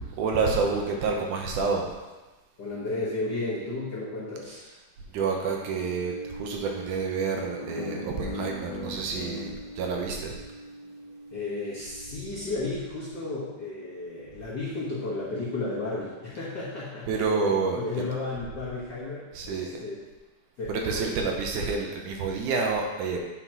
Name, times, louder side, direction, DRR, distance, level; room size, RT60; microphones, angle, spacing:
voice 1, 0.2-1.9 4.5-4.6 5.1-10.4 17.1-18.0 19.3-19.7 20.7-23.2, right 4 dB, 80° right, 1 dB, 2.2 m, -28 dB
voice 2, 2.6-4.6 11.3-17.3 17.7-19.9 20.6-21.1, left 2 dB, 50° left, -10 dB, 1.3 m, -33 dB
sound 1, 5.6-14.7, right 1 dB, 10° left, 1.8 m, -44 dB
sound 2, 7.6-10.7, left 2 dB, 65° left, 1.7 m, -39 dB
9.4 x 6.2 x 2.9 m, 1.2 s
omnidirectional pair, 3.8 m